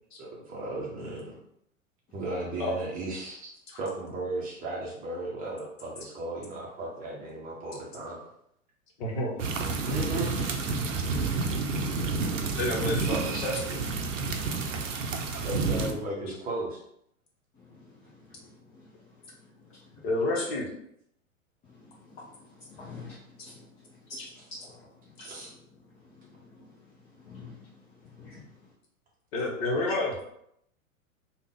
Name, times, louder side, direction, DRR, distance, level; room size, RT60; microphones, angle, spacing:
voice 1, 0.2-1.4 2.1-3.5 3.8-8.2 9.8-10.7 15.4-16.8 25.2-25.5, right 2 dB, 20° right, -3 dB, 0.8 m, -35 dB
voice 2, 9.0-9.4 12.6-13.9 20.0-20.7 29.3-30.1, left 2 dB, 45° left, -2 dB, 1.2 m, -29 dB
sound 1, 9.4-15.9, right 4 dB, 65° right, 0.7 m, -30 dB
voice 3, 14.8-15.5 17.5-20.1 21.6-28.7, left 3 dB, 15° left, -7 dB, 0.5 m, -50 dB
3.5 x 2.4 x 3.5 m, 0.73 s
figure-of-eight pair, 100°, 41 cm